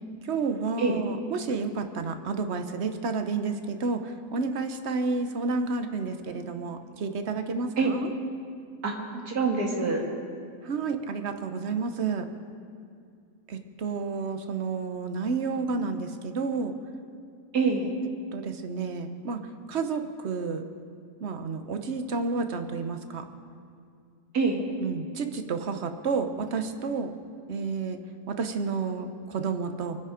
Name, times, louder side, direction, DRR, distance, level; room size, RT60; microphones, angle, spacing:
voice 1, 0.2-8.1 10.6-12.3 13.5-16.7 18.3-19.4 19.7-20.6 21.2-23.3 24.8-27.1 27.5-28.0 28.3-30.0, right 4 dB, 50° right, 7 dB, 1.1 m, -30 dB
voice 2, 8.8-10.0 17.5-17.9 24.3-24.6, right 4 dB, 75° right, 0 dB, 2.4 m, -25 dB
24.0 x 10.0 x 5.1 m, 2.3 s
omnidirectional pair, 1.6 m